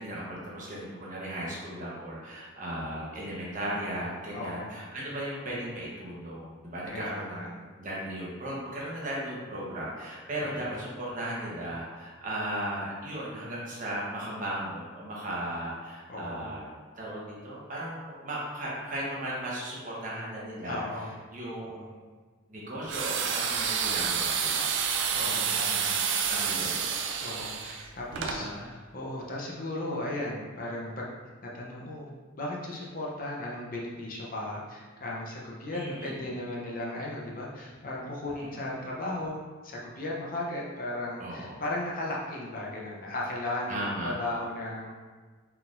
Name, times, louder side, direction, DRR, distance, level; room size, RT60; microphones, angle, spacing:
voice 1, 0.0-16.7 17.0-22.0 22.5-24.8 25.2-26.0 26.3-27.0 27.7-28.7 35.7-36.3 38.4-38.5 41.2-41.5 43.7-44.2, right 1 dB, 40° right, -5 dB, 1.0 m, -36 dB
voice 2, 4.3-4.8 6.9-7.5 10.4-10.5 16.1-16.5 20.6-21.1 21.4-21.8 25.1-25.9 27.2-31.1 31.4-44.9, left 1 dB, 45° left, -3 dB, 0.7 m, -36 dB
sound 1, 22.9-28.4, right 7 dB, 65° right, 0.4 m, -29 dB
4.5 x 3.7 x 2.5 m, 1.4 s
head